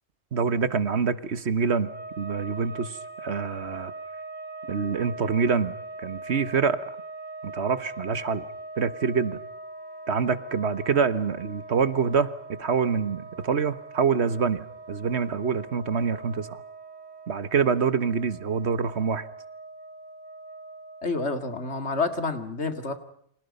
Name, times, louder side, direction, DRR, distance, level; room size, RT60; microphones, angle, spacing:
voice 1, 0.3-1.9 2.2-3.9 4.7-6.8 7.4-8.4 8.8-9.4 10.1-16.6 17.3-19.3, right 5 dB, 70° right, 13 dB, 1.5 m, -26 dB
sound 1, 1.7-21.4, right 2 dB, 20° left, 5.1 m, -42 dB
voice 2, 21.0-22.9, left 3 dB, 70° left, 8 dB, 2.7 m, -28 dB
30.0 x 26.0 x 5.5 m, 0.69 s
omnidirectional pair, 1.2 m